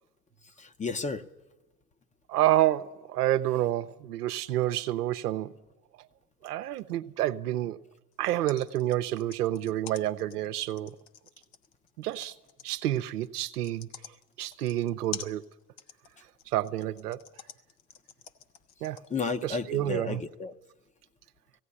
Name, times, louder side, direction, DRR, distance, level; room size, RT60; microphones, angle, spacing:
voice 1, 0.6-1.2 19.1-20.5, left 4 dB, 15° left, 0.8 m, -32 dB
voice 2, 2.3-5.5 6.4-7.8 8.2-11.0 12.0-12.3 12.6-13.9 14.4-15.4 16.5-17.2 18.8-19.0 19.4-20.2, right 14 dB, 85° right, 0.8 m, -29 dB
sound 1, 8.1-19.4, left 8 dB, 55° left, 1.2 m, -46 dB
17.0 x 17.0 x 9.8 m
hypercardioid pair, 105°, 45 cm